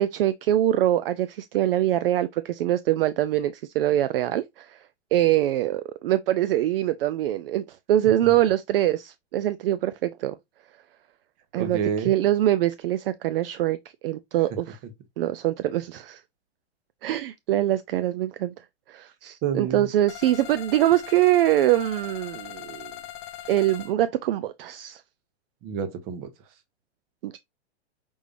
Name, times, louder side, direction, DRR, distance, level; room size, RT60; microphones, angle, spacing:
voice 1, 0.0-4.8 5.1-10.3 11.5-13.8 14.0-14.8 15.2-16.2 17.0-18.5 18.9-22.9 23.5-25.0 27.2-27.4, right 13 dB, 55° right, 0.4 m, -24 dB
voice 2, 11.6-12.1 19.4-19.9 25.6-26.3, right 7 dB, 30° right, 0.9 m, -28 dB
sound 1, 20.1-23.9, left 12 dB, 25° left, 0.4 m, -40 dB
5.3 x 3.3 x 2.5 m
hypercardioid pair, 145°, 34 cm